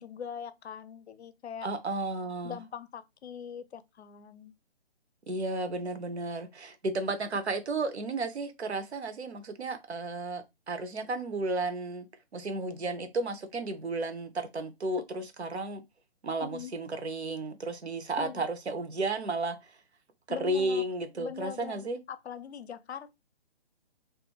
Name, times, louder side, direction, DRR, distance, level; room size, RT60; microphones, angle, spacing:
voice 1, 0.0-1.7 2.4-4.5 16.4-16.8 18.2-18.5 20.3-20.8 21.2-23.1, left 8 dB, 80° left, 0.5 m, -42 dB
voice 2, 1.6-2.6 5.3-12.0 12.3-15.8 16.2-19.7 20.3-22.0, right 2 dB, 90° right, 0.6 m, -33 dB
2.4 x 2.3 x 2.8 m
figure-of-eight pair, 145°, 32 cm